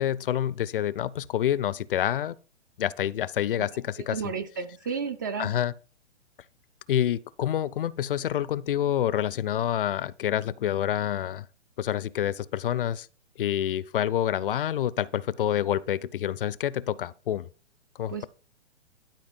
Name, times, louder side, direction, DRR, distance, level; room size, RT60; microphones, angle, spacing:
voice 1, 0.0-2.4 2.8-4.2 5.4-5.7 6.9-11.5 11.8-13.1 13.4-17.5 18.0-18.3, left 11 dB, 50° left, 0.5 m, -27 dB
voice 2, 4.0-5.5 18.1-18.3, right 6 dB, 20° right, 0.4 m, -32 dB
12.0 x 5.1 x 5.3 m
figure-of-eight pair, 125°, 36 cm